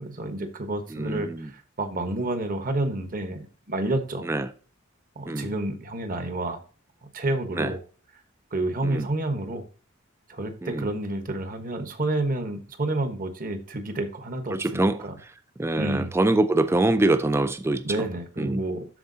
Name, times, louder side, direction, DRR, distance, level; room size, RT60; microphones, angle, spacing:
voice 1, 0.0-4.2 5.2-6.6 7.0-7.8 8.5-9.6 10.3-15.1 15.8-16.1 17.8-18.9, right 2 dB, 40° right, 1.1 m, -29 dB
voice 2, 0.9-1.5 4.2-4.5 5.3-5.5 7.5-7.7 8.8-9.1 10.6-10.9 14.5-15.1 15.6-17.8 18.4-18.6, right 2 dB, 10° right, 0.3 m, -24 dB
12.5 x 4.6 x 2.7 m
head